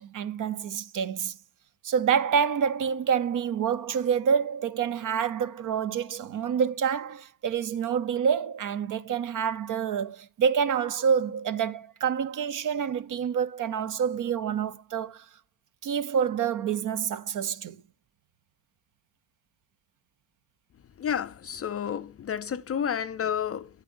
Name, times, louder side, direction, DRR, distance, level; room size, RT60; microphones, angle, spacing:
voice 1, 0.0-1.4 1.8-15.2 15.8-17.8, right 7 dB, 45° right, 0.6 m, -27 dB
voice 2, 21.0-23.7, left 8 dB, 35° left, 0.5 m, -30 dB
10.5 x 8.2 x 2.5 m
supercardioid pair, 80°, 45 cm